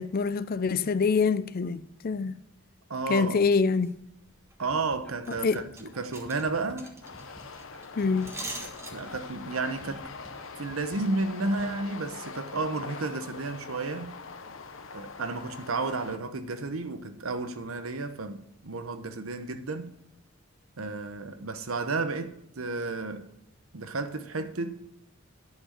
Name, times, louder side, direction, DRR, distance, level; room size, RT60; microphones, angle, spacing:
voice 1, 0.0-2.4 3.1-3.9 5.4-5.6 8.0-8.3, left 5 dB, 45° left, 0.5 m, -25 dB
voice 2, 2.9-3.4 4.6-7.0 8.9-10.0 10.6-14.2 14.9-19.9 20.8-23.3 23.7-24.9, right 3 dB, 85° right, 1.0 m, -32 dB
sound 1, 3.8-3.9 4.3-4.6 4.9-5.0 5.2-9.3 9.6-9.9, right 2 dB, 15° right, 1.4 m, -43 dB
sound 2, 4.6-11.7, equal, 5° left, 1.3 m, -51 dB
sound 3, 7.0-16.2, left 4 dB, 70° left, 0.9 m, -43 dB
10.5 x 6.1 x 6.5 m
head